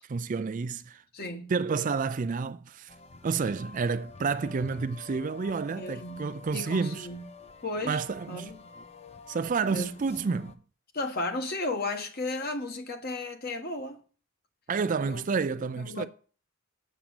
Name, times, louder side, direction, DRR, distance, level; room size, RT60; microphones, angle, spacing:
voice 1, 0.1-1.0 1.5-2.9 3.2-7.1 7.8-8.5 9.3-10.6 14.7-16.1, right 5 dB, 40° right, 0.4 m, -30 dB
voice 2, 1.1-1.5 5.8-6.3 6.5-7.2 7.6-8.0 8.3-8.6 9.7-9.9 10.9-14.0 15.0-15.2 15.8-16.1, left 2 dB, 50° left, 1.4 m, -34 dB
sound 1, 2.9-10.6, left 5 dB, 30° left, 0.7 m, -49 dB
7.3 x 6.2 x 7.1 m
head